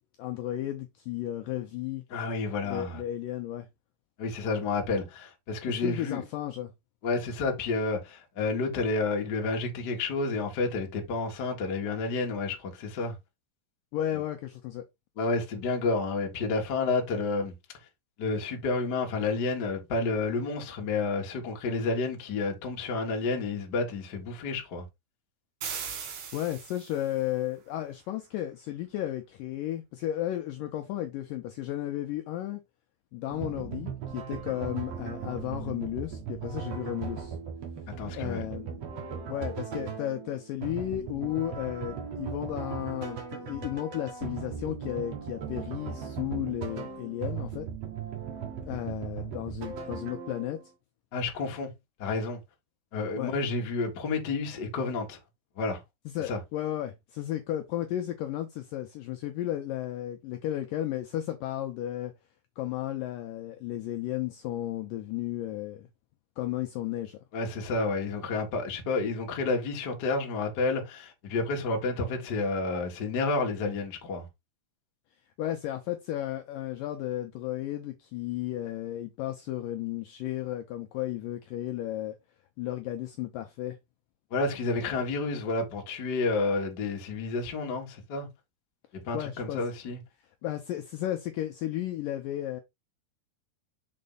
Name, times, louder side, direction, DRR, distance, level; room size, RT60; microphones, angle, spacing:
voice 1, 0.2-2.0 2.6-3.7 5.8-6.7 13.9-14.8 25.9-32.6 33.1-37.4 38.1-38.8 39.3-47.7 48.6-50.6 53.2-53.3 56.1-62.1 62.6-65.9 66.4-67.2 75.4-82.2 82.6-83.8 89.1-89.6 90.4-92.6, left 13 dB, 85° left, 2.0 m, -34 dB
voice 2, 2.1-3.0 4.2-6.2 7.0-13.2 15.2-17.5 18.2-24.8 38.0-38.4 51.1-51.7 52.0-52.4 52.9-55.2 55.6-55.8 56.3-56.4 67.3-74.2 84.3-88.3 89.0-90.0, left 3 dB, 55° left, 1.1 m, -30 dB
sound 1, 25.6-27.2, right 7 dB, 75° right, 3.9 m, -38 dB
sound 2, 33.3-50.6, right 7 dB, 55° right, 2.1 m, -38 dB
6.5 x 4.3 x 3.9 m
omnidirectional pair, 4.6 m